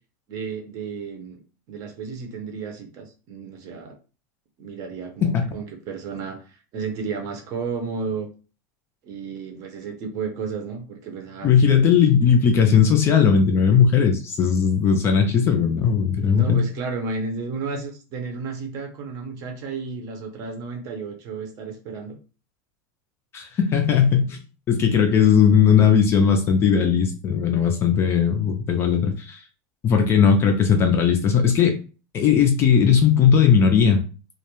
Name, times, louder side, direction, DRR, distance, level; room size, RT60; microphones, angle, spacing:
voice 1, 0.3-1.4 1.7-4.0 4.6-8.3 9.0-11.9 16.3-22.2, right 5 dB, 40° right, 4 dB, 0.6 m, -32 dB
voice 2, 11.4-16.6 23.3-24.4 24.7-29.4 29.8-31.7 32.1-34.0, left 7 dB, 25° left, 4 dB, 0.4 m, -18 dB
2.2 x 2.1 x 2.9 m, 0.35 s
supercardioid pair, 155°, 10 cm